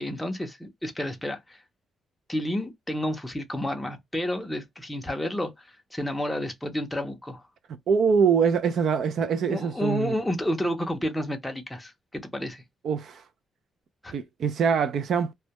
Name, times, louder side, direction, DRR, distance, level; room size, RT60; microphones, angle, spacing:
voice 1, 0.0-1.6 2.3-7.4 9.5-12.6 14.0-14.1, left 1 dB, 5° left, 0.5 m, -30 dB
voice 2, 7.9-10.1 12.8-13.2 14.1-15.3, right 6 dB, 60° right, 0.4 m, -24 dB
2.1 x 2.1 x 2.7 m
cardioid pair, 135°, 0 cm